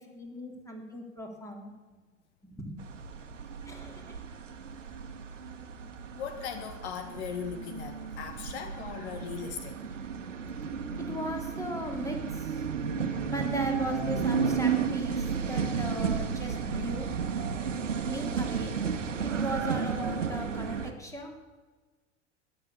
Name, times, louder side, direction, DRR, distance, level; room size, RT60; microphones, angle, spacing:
voice 1, 0.0-1.9 2.4-2.8 3.7-4.2 11.0-12.7 13.3-17.1 18.1-18.7 19.2-21.3, equal, 10° left, 2 dB, 3.2 m, -38 dB
sound 1, 2.8-20.9, right 6 dB, 90° right, 1.3 m, -33 dB
voice 2, 6.2-9.8, left 7 dB, 65° left, 8 dB, 1.5 m, -38 dB
13.0 x 11.0 x 7.1 m, 1.3 s
hypercardioid pair, 90°, 36 cm